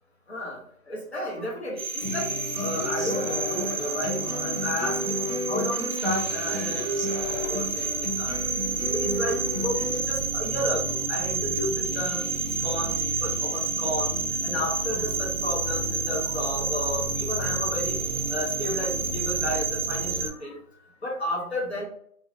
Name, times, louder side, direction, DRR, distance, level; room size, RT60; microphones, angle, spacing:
voice 1, 0.3-0.6 0.9-8.4 8.9-12.3 12.6-14.1 14.4-18.0 18.3-20.6 21.0-21.9, left 1 dB, 45° left, -2 dB, 0.7 m, -32 dB
sound 1, 1.8-20.3, right 4 dB, 65° right, 0.5 m, -29 dB
Human voice / Acoustic guitar, 2.0-10.0, equal, ahead, 1.0 m, -32 dB
2.5 x 2.1 x 2.5 m, 0.65 s
figure-of-eight pair, 170°, 44 cm